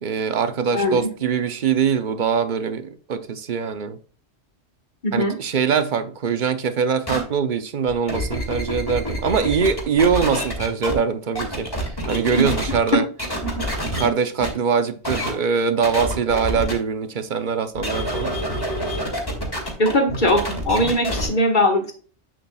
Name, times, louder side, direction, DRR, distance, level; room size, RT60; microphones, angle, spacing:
voice 1, 0.0-4.0 5.1-13.1 13.9-18.4, right 6 dB, 45° right, 0.8 m, -23 dB
voice 2, 5.0-5.3 12.4-12.5 12.9-13.0 19.8-21.9, left 1 dB, 45° left, 1.7 m, -20 dB
sound 1, 7.1-7.2 7.9-10.9 11.4-12.9 13.2-14.1 14.4-14.5 15.0-15.3 15.8-16.7 17.8-21.3, equal, 20° left, 2.4 m, -27 dB
8.4 x 7.5 x 2.3 m
omnidirectional pair, 1.2 m